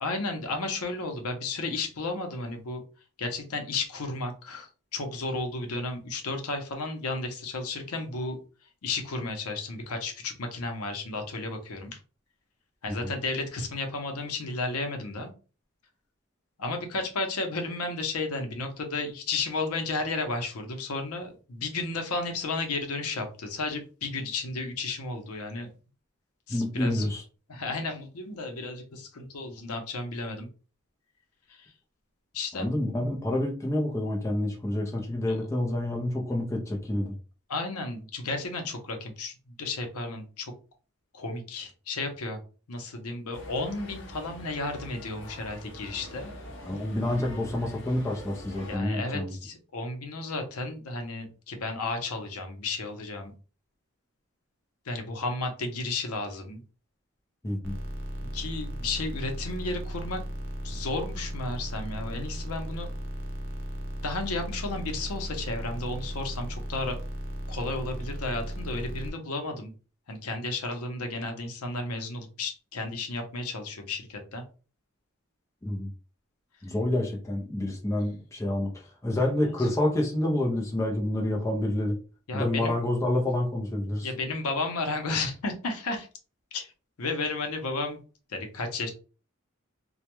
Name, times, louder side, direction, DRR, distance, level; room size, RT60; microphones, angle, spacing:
voice 1, 0.0-2.8 3.2-8.4 8.8-12.0 12.8-15.3 16.6-25.7 26.5-27.1 27.5-30.5 32.3-32.7 35.3-35.4 37.5-39.3 39.6-40.5 41.1-42.4 42.7-46.3 48.7-53.3 54.9-56.6 58.3-60.2 60.6-62.9 64.0-67.0 67.5-69.7 70.1-74.4 79.4-79.7 82.3-82.8 84.0-86.1 86.5-86.7 87.0-88.0 88.3-88.9, left 3 dB, 90° left, 5 dB, 0.6 m, -33 dB
voice 2, 26.5-27.2 32.5-37.1 46.6-49.3 57.4-57.7 75.6-75.9 76.6-78.7 79.0-82.0 82.3-84.1, left 1 dB, 15° left, 0 dB, 0.4 m, -28 dB
sound 1, 43.3-48.8, left 1 dB, 55° left, 0.6 m, -44 dB
sound 2, 57.6-69.1, equal, 55° right, 0.5 m, -36 dB
2.2 x 2.1 x 2.9 m, 0.36 s
head